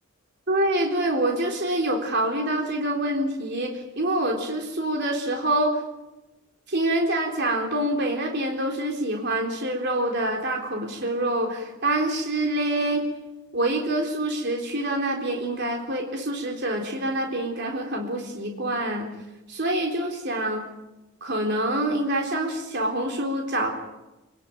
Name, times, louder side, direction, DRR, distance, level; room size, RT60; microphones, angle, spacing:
voice 1, 0.5-5.8 6.7-13.1 13.5-19.1 19.5-20.7 21.2-23.7, right 1 dB, 50° right, 1 dB, 3.8 m, -26 dB
26.5 x 19.0 x 9.1 m, 1.0 s
head